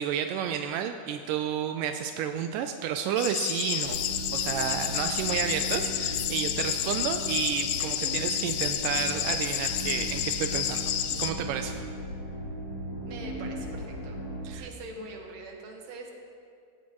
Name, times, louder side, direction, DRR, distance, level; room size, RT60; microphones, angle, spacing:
voice 1, 0.0-10.9 11.2-11.8 14.4-14.7, right 8 dB, 85° right, 6 dB, 1.9 m, -31 dB
sound 1, 3.2-11.3, left 11 dB, 80° left, 2.0 m, -30 dB
sound 2, 3.8-14.5, equal, 40° left, 4.0 m, -37 dB
voice 2, 13.1-14.2 14.5-16.1, right 2 dB, 55° right, 1 dB, 2.3 m, -43 dB
17.0 x 17.0 x 3.1 m, 2.4 s
omnidirectional pair, 4.4 m